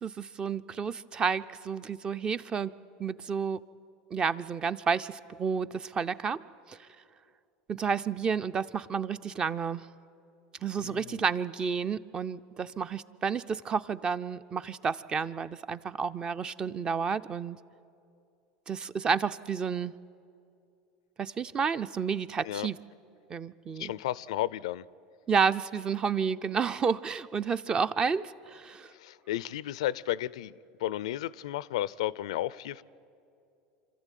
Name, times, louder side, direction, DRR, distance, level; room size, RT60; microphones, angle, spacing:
voice 1, 0.0-2.7 3.0-3.6 4.1-6.4 6.7-6.8 7.7-9.8 10.6-17.6 18.7-19.9 21.2-22.8 23.3-23.9 25.3-28.9, right 6 dB, 25° right, 0.5 m, -30 dB
voice 2, 10.8-11.2 22.4-22.7 23.8-24.8 28.9-32.8, left 13 dB, 90° left, 0.4 m, -33 dB
25.5 x 13.5 x 9.2 m
supercardioid pair, 115°, 3 cm